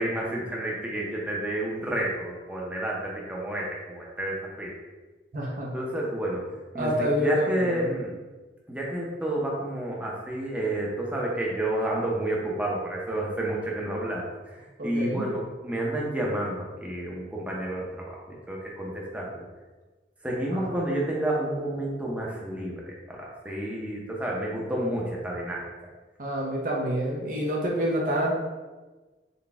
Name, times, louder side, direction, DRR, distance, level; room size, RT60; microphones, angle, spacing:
voice 1, 0.0-4.7 5.7-6.4 6.7-8.1 8.7-14.2 14.8-18.1 18.5-19.5 20.2-23.2 23.4-25.6, right 1 dB, 10° right, -4 dB, 0.6 m, -30 dB
voice 2, 5.3-5.7 6.7-7.9 14.8-15.2 20.5-20.7 26.2-28.3, equal, 50° right, -2 dB, 0.6 m, -27 dB
4.0 x 2.3 x 3.4 m, 1.3 s
head